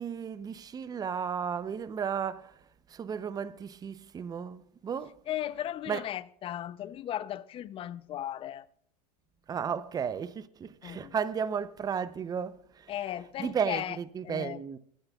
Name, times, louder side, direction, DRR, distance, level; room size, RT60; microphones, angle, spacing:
voice 1, 0.0-2.6 2.9-5.1 5.9-6.0 9.5-12.9 13.4-14.8, right 7 dB, 20° right, 0.7 m, -34 dB
voice 2, 5.3-8.7 10.8-11.1 12.9-14.0 14.2-14.6, left 12 dB, 25° left, 0.6 m, -36 dB
23.5 x 10.5 x 2.4 m
hypercardioid pair, 125°, 21 cm